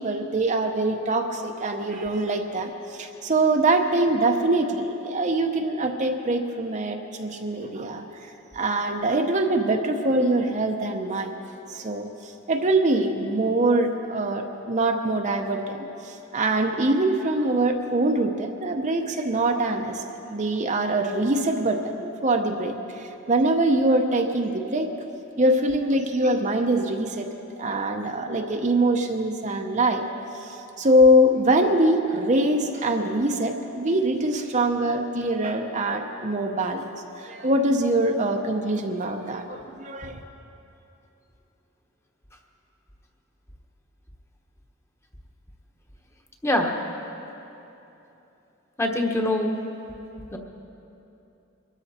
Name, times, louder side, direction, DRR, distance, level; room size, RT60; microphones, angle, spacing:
voice 1, 0.0-8.0 8.5-11.3 11.7-20.0 20.3-24.9 25.4-27.3 27.6-30.1 30.3-36.9 37.2-40.2, right 1 dB, 35° right, 4 dB, 0.8 m, -23 dB
voice 2, 46.4-46.7 48.8-49.6 50.3-50.4, left 1 dB, 15° left, 2 dB, 1.2 m, -23 dB
23.5 x 13.0 x 4.3 m, 2.9 s
head